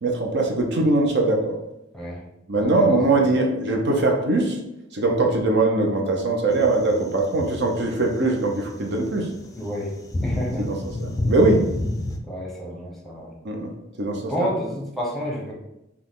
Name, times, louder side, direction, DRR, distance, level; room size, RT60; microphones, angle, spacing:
voice 1, 0.0-1.6 2.5-4.6 4.9-9.3 10.6-11.6 13.4-13.7 14.0-14.5, right 2 dB, 60° right, 1 dB, 0.7 m, -21 dB
voice 2, 2.6-3.2 9.6-10.6 12.3-13.3 14.3-15.5, equal, ahead, -3 dB, 1.0 m, -30 dB
sound 1, 6.5-12.2, left 1 dB, 15° left, 0.4 m, -30 dB
5.8 x 2.3 x 3.7 m, 0.87 s
head